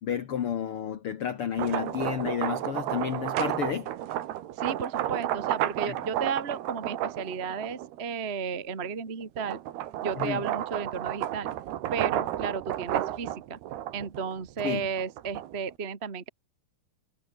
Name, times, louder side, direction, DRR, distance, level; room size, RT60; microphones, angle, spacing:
voice 1, 0.0-3.9 5.9-6.0 10.2-10.4 14.6-14.9, left 9 dB, 70° left, 1.3 m, -31 dB
sound 1, 1.4-8.0 8.5-15.7, right 12 dB, 85° right, 3.6 m, -32 dB
voice 2, 4.5-9.6 10.0-11.5 11.9-13.6 13.9-16.3, right 6 dB, 40° right, 0.9 m, -34 dB
omnidirectional pair, 4.5 m